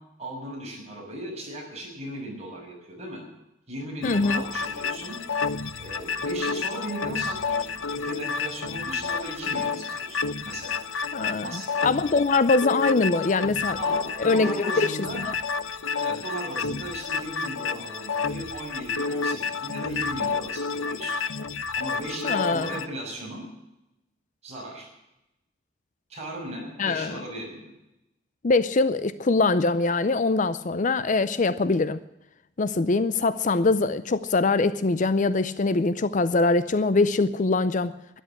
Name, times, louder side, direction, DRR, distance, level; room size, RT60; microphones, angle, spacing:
voice 1, 0.2-3.2 3.7-5.2 5.8-10.8 11.4-11.9 13.8-15.2 16.0-21.2 21.8-23.4 24.4-24.9 26.1-27.7, right 1 dB, 30° right, -2 dB, 6.4 m, -37 dB
sound 1, 4.0-22.9, left 5 dB, 80° left, 0.8 m, -30 dB
voice 2, 4.0-4.4 11.1-15.3 22.2-22.7 26.8-27.2 28.4-32.0 32.6-38.2, left 3 dB, 40° left, 14 dB, 0.5 m, -23 dB
12.5 x 10.5 x 9.9 m, 0.90 s
head